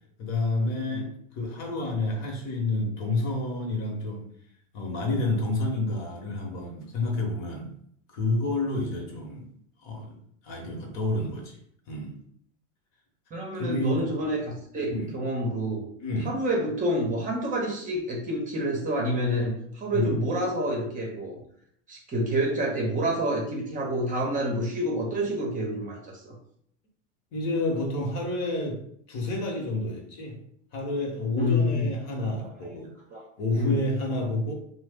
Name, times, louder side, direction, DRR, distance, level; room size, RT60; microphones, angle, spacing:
voice 1, 0.2-1.1 1.3-4.3 4.7-7.7 8.1-9.5 9.8-10.2 10.4-11.6 11.9-12.2 13.5-14.0 14.9-15.1 16.0-16.3 19.9-20.1 27.3-28.8 29.1-30.4 30.7-32.9 33.4-34.5, left 2 dB, 45° left, 1 dB, 1.0 m, -29 dB
voice 2, 13.3-15.8 16.2-21.4 21.9-26.3 31.4-31.9 32.6-32.7 33.1-33.2 33.5-33.8, equal, 20° right, -1 dB, 0.7 m, -28 dB
3.0 x 2.0 x 3.4 m, 0.66 s
hypercardioid pair, 115°, 38 cm